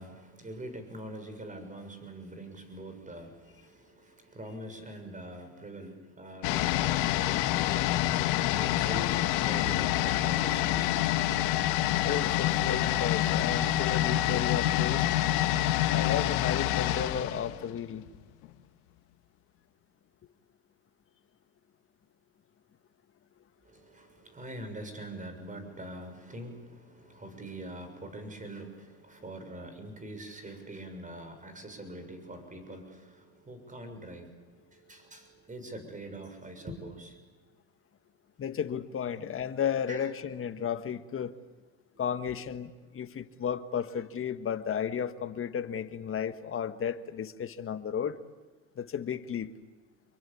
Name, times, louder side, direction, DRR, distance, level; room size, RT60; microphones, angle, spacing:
voice 1, 0.0-7.3 8.5-11.2 23.6-37.3 39.9-40.1, right 1 dB, 20° right, 6.8 m, -44 dB
sound 1, 6.4-18.2 18.4-18.5, left 13 dB, 70° left, 1.9 m, -27 dB
voice 2, 12.0-15.0 15.9-18.0 38.4-41.3 42.0-48.2 48.7-49.5, left 8 dB, 35° left, 1.7 m, -33 dB
27.0 x 23.0 x 8.7 m
supercardioid pair, 95°, 39 cm